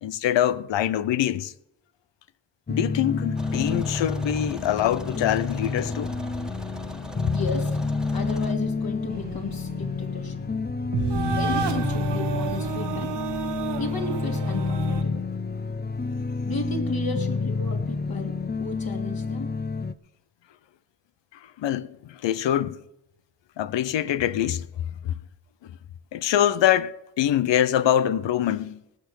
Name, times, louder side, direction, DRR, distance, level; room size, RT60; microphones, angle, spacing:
voice 1, 0.0-1.5 2.7-6.1 21.6-22.8 23.6-24.6 25.0-25.1 26.1-28.8, left 11 dB, 85° left, 0.7 m, -24 dB
sound 1, 2.7-19.9, left 4 dB, 25° left, 0.7 m, -29 dB
sound 2, 3.3-8.5, right 1 dB, ahead, 1.6 m, -40 dB
voice 2, 7.3-7.8 8.1-10.4 11.4-13.1 13.8-15.2 16.4-19.5, left 3 dB, 55° left, 3.1 m, -34 dB
sound 3, 9.1-15.0, right 6 dB, 70° right, 1.4 m, -32 dB
18.5 x 6.7 x 6.4 m
cardioid pair, 50°, 43 cm